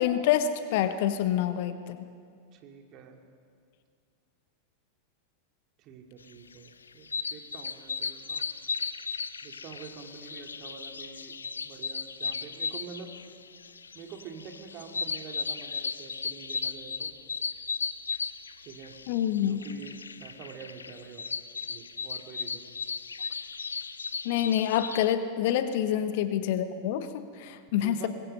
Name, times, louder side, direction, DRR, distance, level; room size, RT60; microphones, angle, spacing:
voice 1, 0.0-2.1 19.1-19.6 24.2-28.1, left 10 dB, 50° left, 11 dB, 1.1 m, -27 dB
voice 2, 2.5-3.2 5.8-8.4 9.4-11.3 11.6-13.1 13.9-17.1 18.6-19.0 19.5-21.2 21.6-22.6 25.9-26.0 27.8-28.1, right 6 dB, 35° right, 3 dB, 2.6 m, -46 dB
sound 1, 6.5-25.1, left 5 dB, 75° left, 0.6 m, -36 dB
24.5 x 21.0 x 5.6 m, 2.2 s
figure-of-eight pair, 90°, 0 cm